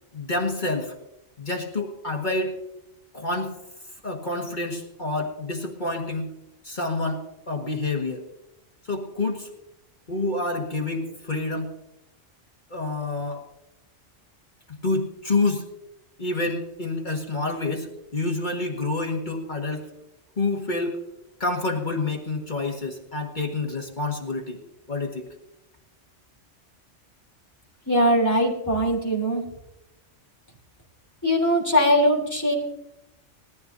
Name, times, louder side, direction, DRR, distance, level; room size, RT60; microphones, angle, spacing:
voice 1, 0.1-1.0 1.4-2.5 3.1-3.5 4.0-6.3 6.6-8.3 8.8-9.5 10.1-11.7 12.7-13.4 14.7-15.7 16.2-19.9 20.4-21.0 21.4-24.6 24.9-25.3, left 2 dB, 40° left, 1 dB, 1.8 m, -28 dB
voice 2, 27.9-29.4 31.2-32.5, equal, 15° left, -2 dB, 3.5 m, -21 dB
20.0 x 14.0 x 2.7 m, 0.89 s
omnidirectional pair, 1.2 m